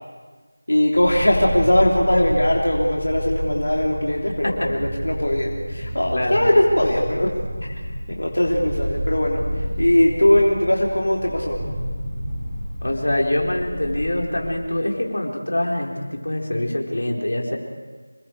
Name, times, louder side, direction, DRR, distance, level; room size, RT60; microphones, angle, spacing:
voice 1, 0.7-7.3 7.6-7.7 8.1-11.6, left 1 dB, 90° left, -2 dB, 3.4 m, -20 dB
sound 1, 0.9-14.5, equal, 15° right, 3.8 m, -30 dB
voice 2, 6.1-6.6 12.8-17.6, left 1 dB, 70° left, 0 dB, 4.6 m, -24 dB
27.5 x 24.5 x 4.8 m, 1.4 s
figure-of-eight pair, 175°, 0 cm